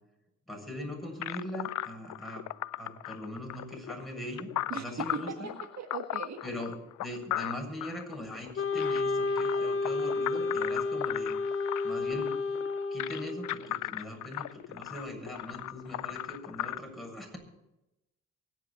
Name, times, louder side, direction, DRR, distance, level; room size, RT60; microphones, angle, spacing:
voice 1, 0.5-2.4 2.8-5.5 6.4-11.3 11.8-12.4 12.9-17.4, left 1 dB, ahead, 1 dB, 7.4 m, -41 dB
sound 1, 1.2-16.8, left 14 dB, 70° left, 0.6 m, -37 dB
voice 2, 4.7-6.4, right 6 dB, 60° right, 6 dB, 1.6 m, -39 dB
Wind instrument woodwind instrument, 8.6-13.7, left 3 dB, 50° left, 1.2 m, -31 dB
24.0 x 10.5 x 4.3 m, 0.93 s
supercardioid pair, 65°, 30 cm